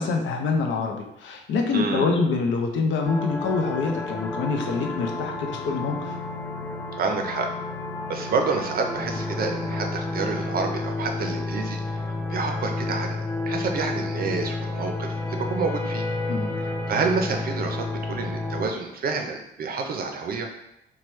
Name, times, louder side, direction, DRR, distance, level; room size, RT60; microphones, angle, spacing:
voice 1, 0.0-6.2 16.3-16.5, left 4 dB, 70° left, 2 dB, 0.5 m, -26 dB
voice 2, 1.7-2.1 7.0-7.5 8.1-13.2 13.5-16.0 16.6-20.5, right 4 dB, 50° right, 4 dB, 0.5 m, -28 dB
sound 1, 3.0-18.7, left 2 dB, 10° left, 0.4 m, -30 dB
3.0 x 2.2 x 3.1 m, 0.80 s
cardioid pair, 90°, 20 cm